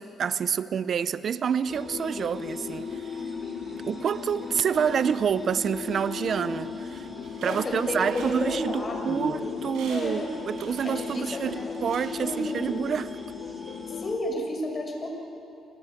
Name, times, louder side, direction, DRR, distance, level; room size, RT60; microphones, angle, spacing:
voice 1, 0.0-3.2 3.8-7.1 7.4-13.1, right 7 dB, 55° right, 0.6 m, -28 dB
sound 1, 1.7-14.2, left 7 dB, 70° left, 0.8 m, -37 dB
sound 2, 1.7-14.2, right 1 dB, 25° right, 4.9 m, -44 dB
sound 3, 6.9-9.0 9.4-9.5 9.7-12.9 13.2-13.3, right 3 dB, 85° right, 6.7 m, -46 dB
voice 2, 7.4-9.5 9.9-10.3 10.8-11.8 12.2-12.8 14.0-15.1, left 1 dB, 35° left, 7.3 m, -32 dB
29.5 x 21.0 x 9.3 m
cardioid pair, 90°, 0 cm